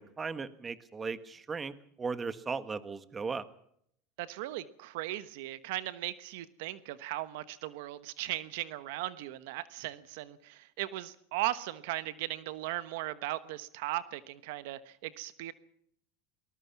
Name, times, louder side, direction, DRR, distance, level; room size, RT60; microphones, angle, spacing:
voice 1, 0.0-3.5, right 5 dB, 20° right, 12 dB, 1.5 m, -37 dB
voice 2, 4.2-15.5, right 15 dB, 75° right, 14 dB, 1.1 m, -37 dB
22.0 x 20.0 x 6.0 m, 0.68 s
supercardioid pair, 115°, 0 cm